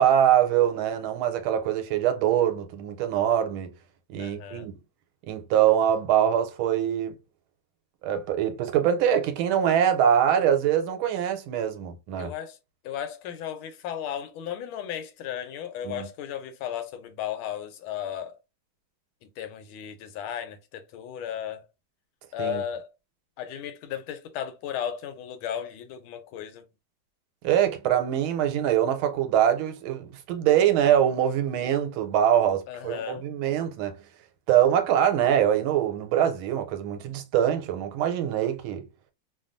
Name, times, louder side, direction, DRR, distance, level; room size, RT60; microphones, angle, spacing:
voice 1, 0.0-3.7 4.1-4.7 5.3-7.2 8.0-12.3 15.8-16.1 22.4-22.6 27.4-34.0 34.5-38.9, right 10 dB, 90° right, 1.4 m, -23 dB
voice 2, 4.2-4.7 12.2-12.6 12.8-18.4 19.2-21.7 22.3-22.9 23.4-26.6 32.7-33.3, left 9 dB, 85° left, 1.5 m, -35 dB
3.2 x 2.3 x 2.5 m
omnidirectional pair, 2.2 m